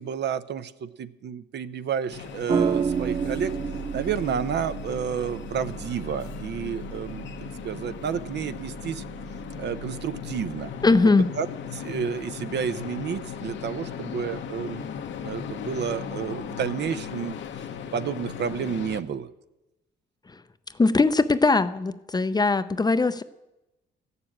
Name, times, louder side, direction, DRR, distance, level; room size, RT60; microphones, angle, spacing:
voice 1, 0.0-3.5 3.9-7.3 7.6-9.0 9.6-10.7 11.4-11.5 11.7-14.8 15.2-17.4 17.9-19.3, right 7 dB, 60° right, 12 dB, 0.7 m, -30 dB
sound 1, 2.1-19.0, left 7 dB, 70° left, 1.0 m, -37 dB
sound 2, 2.5-11.0, right 6 dB, 25° right, 0.3 m, -32 dB
voice 2, 10.8-11.3 20.3-20.4 20.8-23.2, left 3 dB, 20° left, 13 dB, 0.6 m, -20 dB
14.5 x 6.9 x 8.7 m, 0.97 s
cardioid pair, 90°, 20 cm